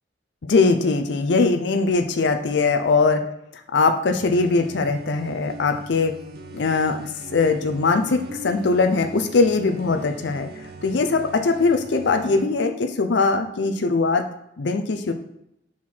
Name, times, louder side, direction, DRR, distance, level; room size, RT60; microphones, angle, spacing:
voice 1, 0.4-3.2 3.7-6.1 6.5-10.5 10.8-14.2 14.6-15.1, left 4 dB, 70° left, 6 dB, 0.5 m, -21 dB
sound 1, 4.0-12.4, right 1 dB, 55° right, 0.7 m, -40 dB
5.6 x 4.6 x 4.3 m, 0.79 s
head